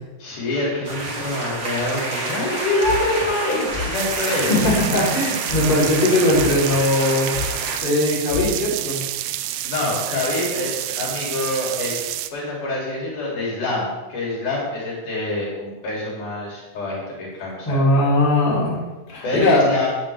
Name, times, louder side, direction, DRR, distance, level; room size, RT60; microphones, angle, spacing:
voice 1, 0.2-4.5 9.6-12.0 12.3-17.8 19.2-19.9, left 2 dB, 70° left, -5 dB, 4.2 m, -25 dB
sound 1, 0.8-7.8, right 2 dB, 55° right, 0.7 m, -29 dB
sound 2, 2.8-3.3 3.7-4.1 4.6-5.0 5.5-5.9 6.3-7.0 7.3-7.7 8.3-8.4, left 8 dB, 5° right, 1.5 m, -30 dB
sound 3, 3.9-12.3, right 13 dB, 85° right, 2.2 m, -29 dB
voice 2, 4.2-7.4 7.8-9.1 17.7-18.8 19.1-19.7, left 1 dB, 40° left, -7 dB, 4.3 m, -19 dB
14.0 x 9.4 x 3.4 m, 1.1 s
omnidirectional pair, 3.7 m